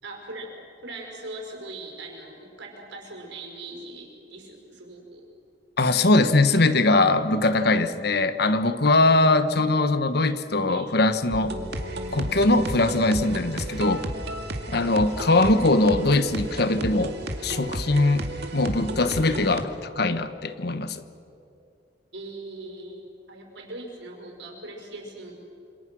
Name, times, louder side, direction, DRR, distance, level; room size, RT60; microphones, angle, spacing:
voice 1, 0.0-5.3 10.7-10.9 15.8-16.6 22.1-25.3, right 2 dB, 90° right, 1 dB, 5.8 m, -40 dB
voice 2, 5.8-11.5 12.1-14.1 14.7-17.2 17.4-21.0, left 2 dB, 60° left, 11 dB, 1.2 m, -21 dB
sound 1, 11.3-19.6, right 1 dB, 65° right, 2.3 m, -33 dB
27.5 x 27.0 x 6.3 m, 2.6 s
head